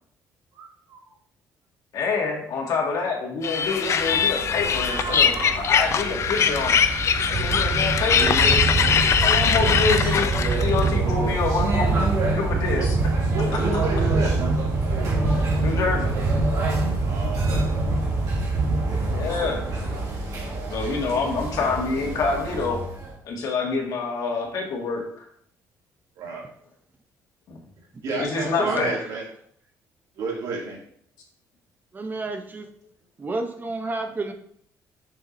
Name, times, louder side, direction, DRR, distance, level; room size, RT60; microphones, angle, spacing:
voice 1, 0.5-1.1 9.5-9.7 12.8-12.9 13.3-14.4 17.0-17.7 20.3-20.8 26.2-26.4 28.0-29.2 30.2-30.8, right 3 dB, 75° right, -3 dB, 2.5 m, -32 dB
voice 2, 1.9-6.8 7.3-8.3 9.2-10.3 10.6-12.1 12.3-13.0 15.6-16.1 19.1-19.6 20.7-22.8 23.3-25.3 27.5-27.6 28.2-29.0, left 4 dB, 70° left, 0 dB, 1.9 m, -26 dB
sound 1, 3.4-10.9, left 7 dB, 50° left, 0.5 m, -22 dB
sound 2, 3.9-23.1, right 3 dB, 60° right, 2.6 m, -25 dB
voice 3, 28.6-29.2 31.9-32.7 33.2-34.3, right 3 dB, 30° right, 5 dB, 0.7 m, -30 dB
6.8 x 6.2 x 2.7 m, 0.63 s
cardioid pair, 115°, 6 cm